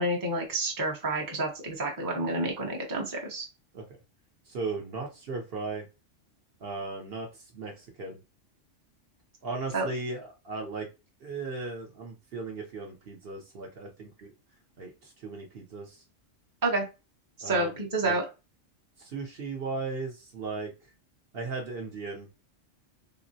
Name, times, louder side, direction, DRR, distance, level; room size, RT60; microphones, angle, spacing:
voice 1, 0.0-3.5 9.7-9.9 16.6-16.8 17.4-18.2, right 2 dB, 20° right, -1 dB, 0.7 m, -29 dB
voice 2, 4.5-5.9 6.6-7.3 7.5-8.2 9.4-10.9 11.2-14.3 14.8-16.0 17.4-18.2 19.0-20.7 21.3-22.3, right 3 dB, 55° right, 1 dB, 0.9 m, -37 dB
3.6 x 2.0 x 2.6 m, 0.28 s
omnidirectional pair, 1.3 m